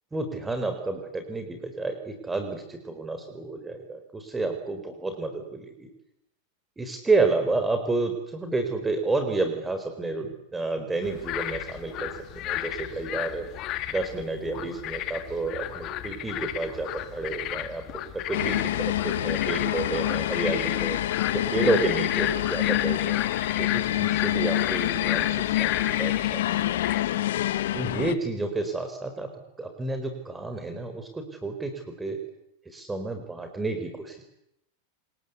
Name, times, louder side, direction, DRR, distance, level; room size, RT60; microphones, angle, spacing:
voice 1, 0.1-5.9 6.8-13.5 13.9-17.8 18.1-21.0 21.3-23.2 23.6-26.8 27.7-29.3 29.6-32.2 32.6-34.2, right 3 dB, 10° right, 6 dB, 4.4 m, -30 dB
sound 1, 11.0-27.0, left 13 dB, 45° left, 2.2 m, -33 dB
sound 2, 18.3-28.1, left 14 dB, 75° left, 1.5 m, -27 dB
27.5 x 20.5 x 8.2 m, 0.80 s
hypercardioid pair, 120°, 0 cm